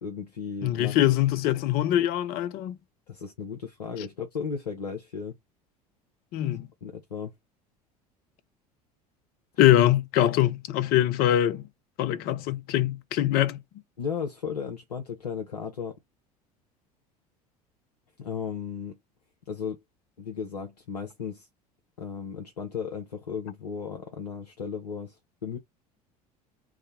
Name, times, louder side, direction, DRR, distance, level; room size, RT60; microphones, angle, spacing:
voice 1, 0.0-1.0 3.1-5.4 6.8-7.3 14.0-16.0 18.2-19.0 19.5-19.8 20.2-21.5 22.0-25.6, left 6 dB, 85° left, 0.8 m, -35 dB
voice 2, 0.6-2.8 6.3-6.7 9.6-11.6 12.0-13.6, left 12 dB, 50° left, 0.6 m, -23 dB
3.6 x 2.1 x 3.5 m
figure-of-eight pair, 70°, 20 cm